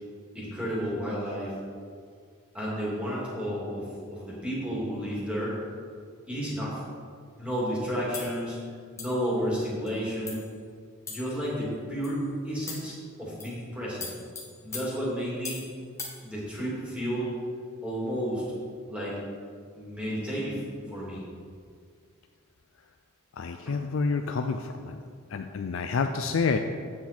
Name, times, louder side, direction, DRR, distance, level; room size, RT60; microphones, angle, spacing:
voice 1, 0.3-1.5 2.5-5.6 6.3-6.8 7.4-8.6 9.0-10.4 11.1-14.1 14.6-15.6 16.2-17.3 17.8-18.4 18.9-19.2 19.7-21.2 23.7-23.8, equal, 5° right, -7 dB, 2.4 m, -32 dB
sound 1, 8.1-8.4 9.0-9.2 9.9-10.0 10.3-10.5 11.1-11.4 12.0-12.2 12.7-13.0 13.4-13.6 14.0-15.7 16.0-16.2, left 4 dB, 15° left, 1.2 m, -40 dB
voice 2, 23.4-25.0 25.3-26.6, left 4 dB, 65° left, 6 dB, 0.4 m, -28 dB
8.3 x 7.5 x 4.3 m, 2.1 s
head